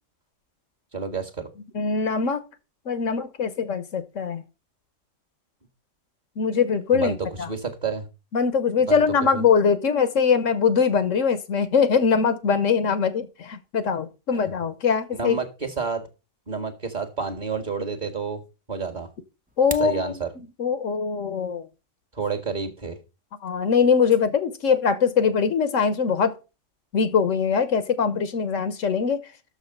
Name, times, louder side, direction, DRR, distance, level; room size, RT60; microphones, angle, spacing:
voice 1, 0.9-1.5 6.9-8.1 8.9-9.0 9.3-9.4 14.5-14.6 15.1-16.0 16.5-18.4 18.7-19.1 19.8-20.3 22.1-23.0, right 5 dB, 35° right, 1.8 m, -29 dB
voice 2, 1.7-2.4 2.9-4.4 6.4-7.5 8.3-15.4 19.6-20.1 20.6-21.7 23.4-26.4 26.9-29.2, left 6 dB, 75° left, 1.3 m, -22 dB
sound 1, 19.4-20.0, right 1 dB, 10° right, 0.5 m, -35 dB
6.7 x 6.4 x 6.6 m
omnidirectional pair, 1.3 m